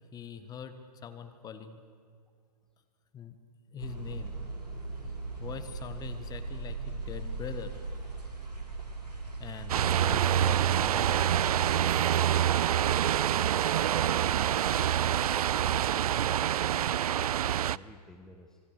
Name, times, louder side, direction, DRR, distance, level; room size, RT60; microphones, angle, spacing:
voice 1, 0.1-0.8 1.0-1.8 3.1-3.4 3.7-4.3 5.4-7.8 9.4-11.3, left 7 dB, 20° left, 9 dB, 1.6 m, -43 dB
sound 1, 3.8-11.7, right 3 dB, 85° right, 6.5 m, -39 dB
sound 2, 9.7-17.8, right 10 dB, 60° right, 0.5 m, -26 dB
voice 2, 14.9-16.3 16.6-18.6, left 1 dB, ahead, 4 dB, 1.2 m, -53 dB
26.5 x 21.5 x 6.7 m, 2.2 s
hypercardioid pair, 120°, 21 cm